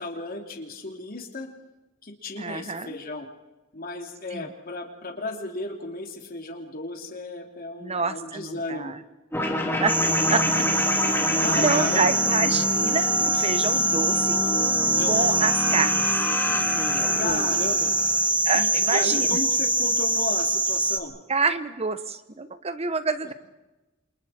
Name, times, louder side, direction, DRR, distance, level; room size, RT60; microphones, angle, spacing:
voice 1, 0.0-1.5 2.0-3.3 3.7-8.9 11.4-12.1 14.9-15.2 17.2-17.9 18.5-21.1, left 2 dB, 45° left, 3 dB, 3.1 m, -34 dB
voice 2, 2.4-3.0 4.3-4.5 7.8-9.0 9.4-10.0 10.3-10.4 11.5-14.4 15.1-16.1 16.7-17.7 18.4-19.4 21.3-23.3, right 4 dB, 30° right, 12 dB, 1.0 m, -27 dB
sound 1, 9.3-18.3, left 2 dB, 10° left, 3.1 m, -28 dB
sound 2, 9.9-21.0, right 2 dB, 10° right, 1.3 m, -24 dB
29.0 x 27.0 x 4.4 m, 1.1 s
head